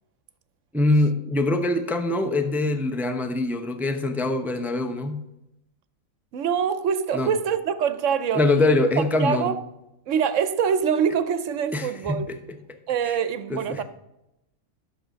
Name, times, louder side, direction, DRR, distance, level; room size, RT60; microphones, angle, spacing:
voice 1, 0.7-5.2 7.1-7.3 8.3-9.5 11.7-12.4 13.0-13.2 13.5-13.8, left 2 dB, ahead, 0.4 m, -23 dB
voice 2, 6.3-8.4 9.2-9.6 10.1-12.3 12.9-13.8, right 7 dB, 65° right, 0.9 m, -24 dB
10.5 x 6.8 x 5.0 m
omnidirectional pair, 1.5 m